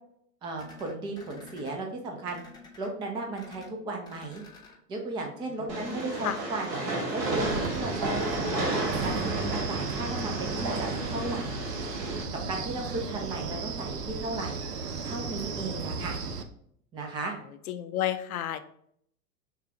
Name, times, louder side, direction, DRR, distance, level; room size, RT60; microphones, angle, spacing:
voice 1, 0.4-2.4 2.8-4.4 4.9-6.8 7.1-9.3 9.7-11.5 12.5-14.6 15.0-16.2 16.9-17.3, right 2 dB, 10° right, 2 dB, 0.4 m, -35 dB
sound 1, 0.6-1.7 2.3-2.9 3.3-3.7 4.0-4.7 5.9-7.8, left 4 dB, 10° left, 0.9 m, -49 dB
voice 2, 5.5-6.4 17.7-18.6, left 11 dB, 65° left, 10 dB, 0.6 m, -32 dB
Train, 5.7-12.2, right 2 dB, 40° right, 1.2 m, -32 dB
Wind, 7.2-16.4, right 4 dB, 75° right, 0.7 m, -34 dB
6.5 x 2.2 x 3.1 m, 0.68 s
figure-of-eight pair, 85°, 48 cm